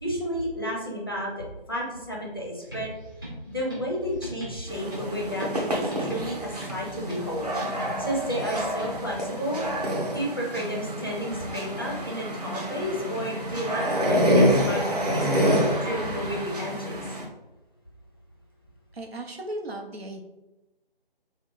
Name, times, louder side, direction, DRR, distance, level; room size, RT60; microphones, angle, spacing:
voice 1, 0.0-2.9 3.5-7.5 7.8-9.6 10.1-17.0, equal, 25° left, -3 dB, 0.5 m, -32 dB
sound 1, 2.6-9.2, equal, 20° right, 0.6 m, -42 dB
sound 2, 4.7-17.2, equal, 40° right, 0.9 m, -27 dB
voice 2, 18.9-20.2, right 1 dB, 90° right, 3 dB, 0.9 m, -36 dB
3.8 x 2.2 x 3.7 m, 1.0 s
figure-of-eight pair, 160°, 30 cm